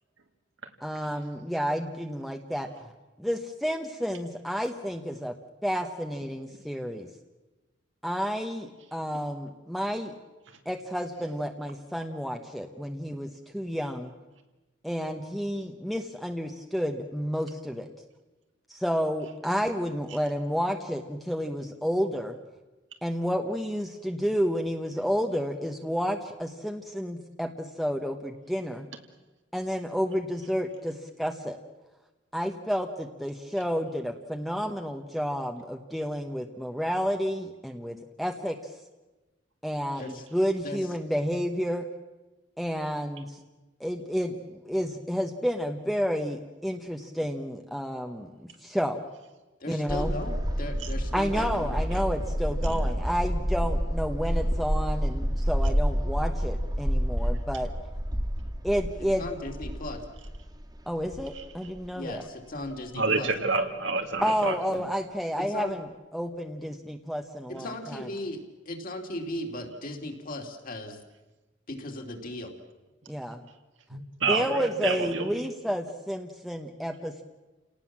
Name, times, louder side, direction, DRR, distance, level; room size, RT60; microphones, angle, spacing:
voice 1, 0.8-2.7 3.2-5.3 5.6-7.1 8.0-10.1 10.7-13.3 13.5-14.1 14.8-17.9 18.7-22.4 23.0-28.9 29.5-31.6 32.3-38.6 39.6-41.8 42.6-43.4 43.8-49.0 49.7-50.2 51.1-57.7 58.6-59.2 60.9-62.2 64.2-65.9 66.1-68.1 73.1-73.4 74.3-77.2, equal, ahead, 4 dB, 1.0 m, -30 dB
voice 2, 49.6-52.0 59.2-60.0 61.9-63.3 65.4-65.7 66.6-66.7 67.5-68.4 68.6-71.0 71.7-72.5, left 1 dB, 50° left, 3 dB, 2.9 m, -37 dB
sound 1, 49.9-61.9 62.2-62.3 62.6-62.7, equal, 20° right, 1.9 m, -29 dB
voice 3, 62.9-64.9 73.9-75.5, right 3 dB, 85° right, 5 dB, 2.4 m, -29 dB
29.0 x 18.5 x 7.4 m, 1.2 s
head